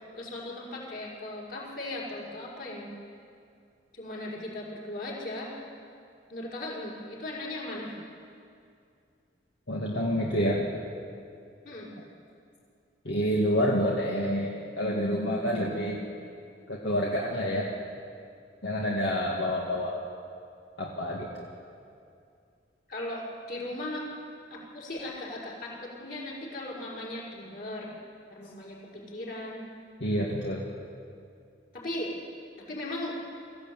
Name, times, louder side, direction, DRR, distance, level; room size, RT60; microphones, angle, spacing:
voice 1, 0.1-3.0 3.9-5.6 6.3-8.0 11.6-11.9 22.9-24.1 24.5-27.9 28.3-29.7 31.7-32.2 32.7-33.2, left 1 dB, 50° left, -4 dB, 5.8 m, -37 dB
voice 2, 9.7-10.6 13.0-16.0 16.7-17.7 18.6-20.0 20.8-21.3 30.0-30.6, equal, 75° left, -3 dB, 2.2 m, -28 dB
23.0 x 15.0 x 9.1 m, 2.5 s
head